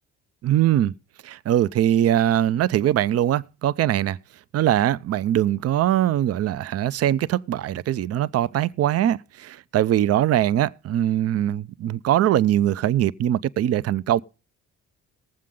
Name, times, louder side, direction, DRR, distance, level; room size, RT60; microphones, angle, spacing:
voice 1, 0.4-0.9 1.2-4.2 4.5-14.2, right 12 dB, 55° right, 0.5 m, -22 dB
19.0 x 7.6 x 3.7 m
cardioid pair, 90°, 30 cm